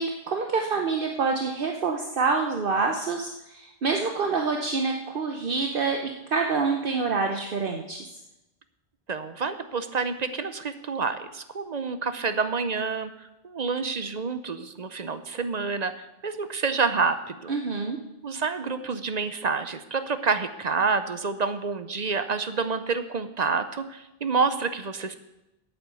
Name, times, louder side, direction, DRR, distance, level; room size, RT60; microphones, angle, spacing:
voice 1, 0.0-8.1 17.5-18.0, right 4 dB, 60° right, 3 dB, 1.1 m, -27 dB
voice 2, 9.1-13.1 13.4-17.5 18.2-25.1, right 4 dB, 45° right, 11 dB, 0.8 m, -28 dB
8.9 x 7.7 x 8.4 m, 0.93 s
omnidirectional pair, 1.0 m